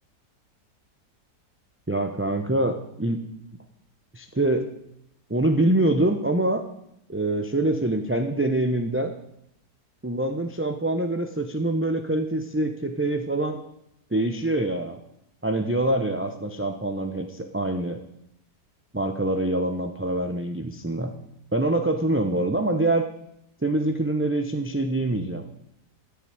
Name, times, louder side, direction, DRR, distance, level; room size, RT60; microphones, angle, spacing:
voice 1, 1.9-3.2 4.1-4.7 5.3-6.6 7.1-9.1 10.0-13.6 14.1-15.0 15.4-18.0 18.9-21.1 21.5-23.1 23.6-25.4, right 1 dB, 10° right, 6 dB, 0.6 m, -25 dB
13.0 x 8.2 x 8.9 m, 0.77 s
omnidirectional pair, 1.7 m